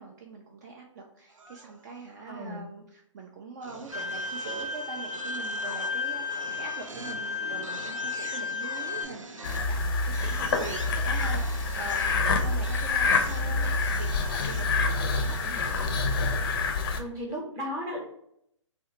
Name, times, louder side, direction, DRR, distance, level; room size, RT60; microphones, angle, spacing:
voice 1, 0.0-15.9, right 4 dB, 35° right, 1 dB, 0.3 m, -43 dB
sound 1, 1.3-2.1 3.6-16.6, right 2 dB, 85° right, 0.5 m, -45 dB
voice 2, 2.3-2.6 17.0-18.0, equal, 20° right, -2 dB, 0.8 m, -35 dB
Bowed string instrument, 3.9-9.0, left 4 dB, 70° right, 1.1 m, -33 dB
sound 2, 9.4-17.0, left 3 dB, 45° left, 0.4 m, -27 dB
2.6 x 2.1 x 3.8 m, 0.74 s
figure-of-eight pair, 130°, 16 cm